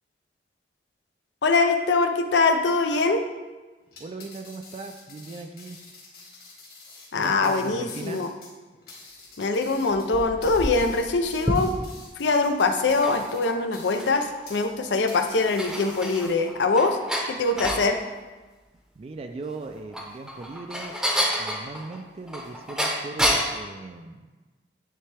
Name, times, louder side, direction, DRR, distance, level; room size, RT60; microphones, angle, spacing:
voice 1, 1.4-3.2 7.1-8.3 9.4-11.7 12.2-17.0 17.3-18.0, left 3 dB, 85° left, 6 dB, 0.5 m, -23 dB
sound 1, 3.8-14.7 15.1-16.7, left 3 dB, 55° left, 1.8 m, -47 dB
voice 2, 4.0-5.8 7.2-8.2 19.0-20.9 21.4-24.3, right 3 dB, 35° right, 6 dB, 0.3 m, -38 dB
sound 2, 9.9-12.1 12.8-14.4 14.8-14.9 15.3-17.9 19.6-23.6, equal, 5° right, 0.7 m, -29 dB
9.7 x 3.3 x 3.3 m, 1.2 s
head